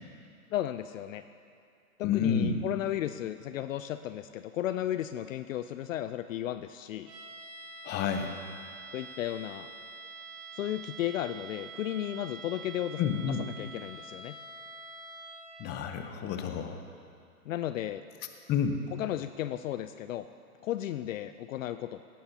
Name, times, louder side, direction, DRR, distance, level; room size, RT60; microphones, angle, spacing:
voice 1, 0.5-1.2 2.0-7.1 8.9-9.7 10.6-13.0 13.6-14.4 17.5-18.0 19.0-20.2 20.6-22.0, left 12 dB, 60° left, 11 dB, 0.6 m, -34 dB
voice 2, 2.0-2.6 7.8-8.3 13.0-13.5 15.6-16.8 18.5-18.8, left 7 dB, 25° left, 6 dB, 0.9 m, -29 dB
sound 1, 7.1-15.8, right 3 dB, 30° right, 2.7 m, -46 dB
17.5 x 15.0 x 2.9 m, 2.4 s
hypercardioid pair, 130°, 44 cm